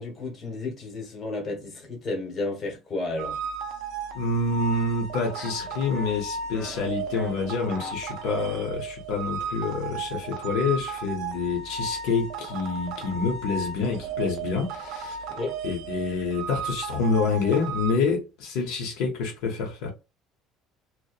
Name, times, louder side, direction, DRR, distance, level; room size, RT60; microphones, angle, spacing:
voice 1, 0.0-3.4 15.3-15.6, left 2 dB, 25° left, 1.0 m, -32 dB
sound 1, 3.2-17.9, right 5 dB, 50° right, 0.5 m, -35 dB
voice 2, 4.1-15.2 15.6-19.9, left 4 dB, 70° left, 0.7 m, -27 dB
sound 2, 5.4-5.5 5.9-6.2 6.5-6.9 7.1-7.9 8.2-8.7, left 1 dB, 5° right, 0.8 m, -42 dB
2.7 x 2.1 x 2.3 m
cardioid pair, 170°, 0 cm